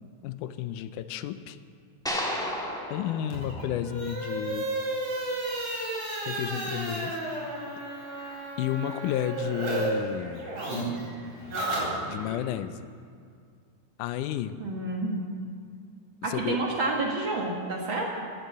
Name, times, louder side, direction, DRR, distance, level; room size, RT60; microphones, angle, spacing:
voice 1, 0.2-1.6 2.9-4.7 6.2-7.2 8.6-10.5 12.1-12.9 14.0-14.6 16.2-16.6, left 11 dB, 85° left, 13 dB, 2.1 m, -32 dB
sound 1, 2.0-4.4, equal, 5° left, 0.6 m, -34 dB
sound 2, 3.2-9.9 10.1-12.4, right 1 dB, 75° right, 5.2 m, -33 dB
voice 2, 14.6-15.2 16.2-18.2, right 2 dB, 50° right, -1 dB, 1.7 m, -29 dB
16.5 x 8.3 x 7.3 m, 2.2 s
omnidirectional pair, 3.6 m